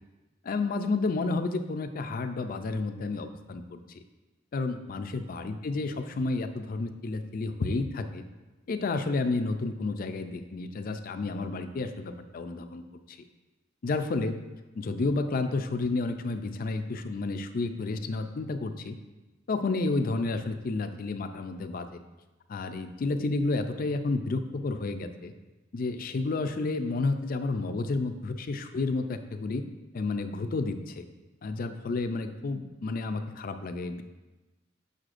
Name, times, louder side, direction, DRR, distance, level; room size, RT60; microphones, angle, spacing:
voice 1, 0.4-3.8 4.5-8.2 8.7-12.8 13.1-13.2 13.8-14.4 14.8-19.0 19.5-21.9 22.5-25.3 25.7-29.6 29.9-31.0 31.4-34.0, left 3 dB, 50° left, 8 dB, 0.4 m, -31 dB
6.6 x 6.4 x 2.5 m, 1.1 s
head